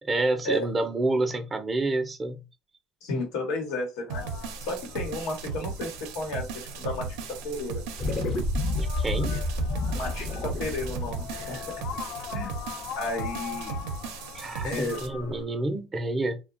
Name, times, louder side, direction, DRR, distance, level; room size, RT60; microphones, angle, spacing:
voice 1, 0.0-2.4 8.7-9.3 14.3-16.4, right 2 dB, 20° right, 0.5 m, -28 dB
voice 2, 3.0-4.3 4.6-7.8 9.3-9.4 9.9-11.7 12.3-12.5 13.0-13.8 14.6-15.0, left 2 dB, 85° left, 1.0 m, -33 dB
sound 1, 4.1-15.4, left 7 dB, 65° left, 0.4 m, -41 dB
sound 2, 4.1-15.1, right 5 dB, 90° right, 0.5 m, -37 dB
sound 3, 8.0-12.6, left 2 dB, 50° left, 0.7 m, -30 dB
2.8 x 2.1 x 2.5 m
cardioid pair, 110°, 0 cm